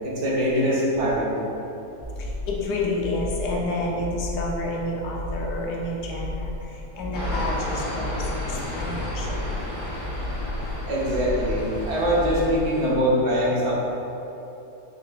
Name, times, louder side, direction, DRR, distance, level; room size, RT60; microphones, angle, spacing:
voice 1, 0.0-1.2 10.9-13.7, equal, 65° right, -6 dB, 1.7 m, -23 dB
sound 1, 2.0-2.6 3.0-3.6 4.0-4.6 5.0-5.6 6.0-6.6 7.0-7.6 8.0-8.6 9.0-9.6 10.0-10.6 11.0-11.6 12.0-12.6, left 1 dB, 30° left, 0.9 m, -33 dB
voice 2, 2.2-9.5, left 2 dB, 80° left, -2 dB, 1.4 m, -30 dB
sound 2, 7.1-13.0, left 1 dB, 50° left, 1.5 m, -32 dB
8.8 x 4.4 x 2.4 m, 3.0 s
omnidirectional pair, 1.8 m